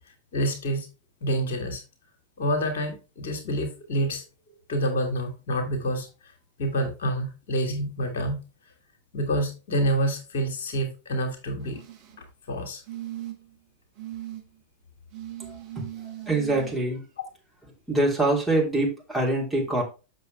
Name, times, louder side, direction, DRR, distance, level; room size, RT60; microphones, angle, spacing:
voice 1, 0.3-0.9 1.2-1.8 2.4-4.2 4.7-6.3 6.6-8.4 9.1-11.8 12.5-12.8, right 1 dB, 60° left, 1.9 m, -27 dB
sound 1, 11.6-12.2 12.9-13.6 14.0-14.4 15.1-16.7 18.0-18.1, right 14 dB, 45° right, 1.7 m, -39 dB
voice 2, 15.4-15.8 16.3-17.0 17.9-19.8, right 2 dB, 5° right, 2.9 m, -25 dB
7.5 x 6.4 x 3.3 m
figure-of-eight pair, 90°, 0 cm